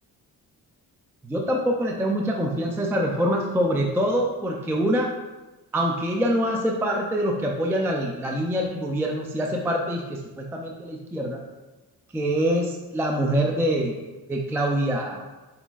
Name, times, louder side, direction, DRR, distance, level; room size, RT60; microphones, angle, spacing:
voice 1, 1.2-5.1 5.7-11.4 12.1-14.0 14.3-15.2, equal, 5° right, 0 dB, 0.3 m, -25 dB
4.7 x 4.1 x 2.3 m, 1.2 s
cardioid pair, 120°, 39 cm